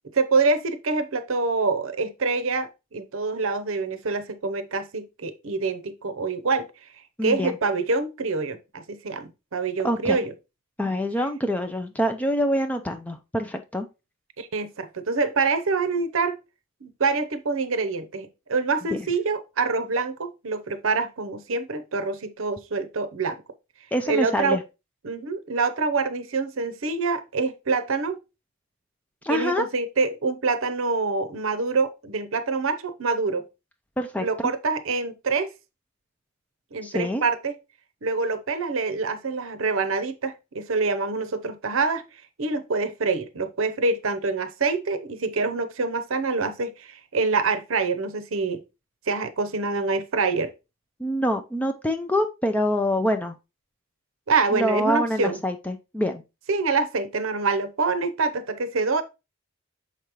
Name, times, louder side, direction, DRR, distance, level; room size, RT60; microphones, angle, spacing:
voice 1, 0.1-6.7 7.2-10.3 14.4-16.3 16.8-23.4 24.1-24.6 25.0-28.2 29.3-33.4 34.2-35.5 36.7-37.6 38.0-42.1 42.4-48.6 49.1-50.5 54.3-55.4 56.5-59.0, right 4 dB, 70° right, 0.7 m, -26 dB
voice 2, 7.2-7.6 9.8-10.2 10.8-13.9 23.9-24.6 29.2-29.7 34.0-34.5 36.8-37.2 51.0-53.3 54.5-56.2, equal, 5° left, 0.4 m, -25 dB
6.5 x 5.1 x 3.0 m
head